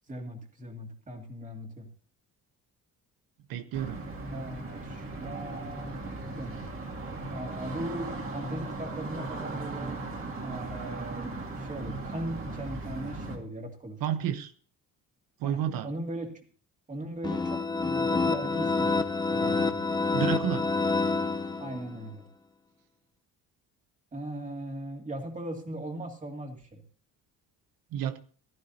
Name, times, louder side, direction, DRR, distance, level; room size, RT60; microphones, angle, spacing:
voice 1, 0.1-1.9 4.3-6.0 6.4-6.6 7.3-10.0 10.4-14.0 15.4-16.3 16.9-19.0 19.3-19.8 21.6-22.2 24.1-26.8, right 1 dB, 20° right, 2 dB, 2.4 m, -39 dB
voice 2, 3.5-4.0 14.0-14.5 15.4-15.9 20.1-20.6 27.9-28.2, right 10 dB, 85° right, 10 dB, 0.9 m, -30 dB
sound 1, 3.7-13.4, right 2 dB, 35° right, 2.5 m, -37 dB
sound 2, 17.2-22.0, left 3 dB, 15° left, 0.8 m, -27 dB
15.0 x 14.5 x 2.8 m, 0.42 s
cardioid pair, 155°, 34 cm